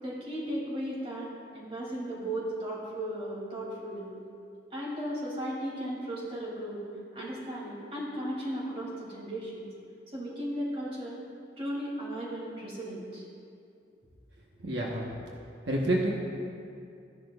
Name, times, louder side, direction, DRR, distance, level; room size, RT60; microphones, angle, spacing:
voice 1, 0.0-1.3 1.5-4.0 4.7-6.8 7.1-9.7 10.1-11.2 11.6-13.2, right 1 dB, 30° right, -5 dB, 2.8 m, -36 dB
voice 2, 14.6-15.1 15.7-16.1, right 1 dB, 85° right, -2 dB, 1.2 m, -28 dB
15.0 x 10.5 x 2.4 m, 2.5 s
head